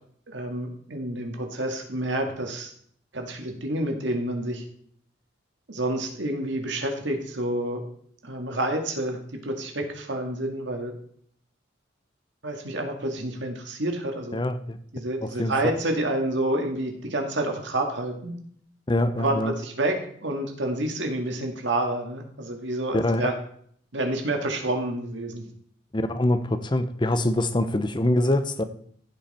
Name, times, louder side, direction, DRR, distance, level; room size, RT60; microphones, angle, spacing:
voice 1, 0.3-2.7 3.1-4.6 5.7-7.8 8.2-10.9 12.4-14.4 14.9-18.3 19.1-23.3 23.9-25.4, right 1 dB, 65° right, 3 dB, 2.0 m, -29 dB
voice 2, 14.3-14.8 15.2-15.5 18.9-19.5 22.9-23.3 25.9-28.6, left 1 dB, 25° left, 10 dB, 0.7 m, -24 dB
15.0 x 5.9 x 4.3 m, 0.62 s
head